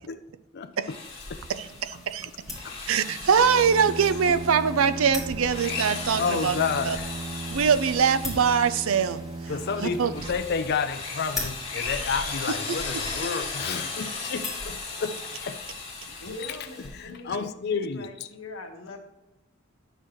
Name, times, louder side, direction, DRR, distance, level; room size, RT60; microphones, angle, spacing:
Drill, 0.7-1.9 2.4-4.8 5.4-9.1 9.6-17.0, left 4 dB, 25° left, 2.2 m, -36 dB
sound 1, 1.0-16.9, left 2 dB, ahead, 3.1 m, -42 dB
voice 1, 1.5-2.3 2.9-6.6 6.8-7.0 7.5-9.2 9.8-10.1 12.5-12.6, right 6 dB, 85° right, 0.5 m, -23 dB
Bowed string instrument, 3.3-11.3, right 3 dB, 25° right, 0.3 m, -37 dB
voice 2, 6.2-7.2 9.5-15.6 16.1-18.3, left 5 dB, 50° left, 0.5 m, -31 dB
voice 3, 16.2-19.0, left 2 dB, 85° left, 1.5 m, -42 dB
9.8 x 6.6 x 3.1 m
head